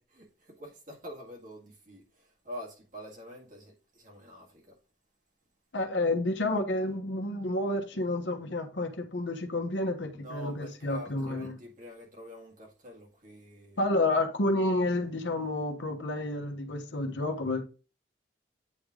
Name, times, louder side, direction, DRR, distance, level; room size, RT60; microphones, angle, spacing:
voice 1, 0.1-4.8 10.1-13.8, equal, 45° right, 1.9 m, -46 dB
voice 2, 5.7-11.5 13.8-17.6, left 2 dB, 80° left, 1.1 m, -30 dB
8.6 x 3.3 x 3.7 m
head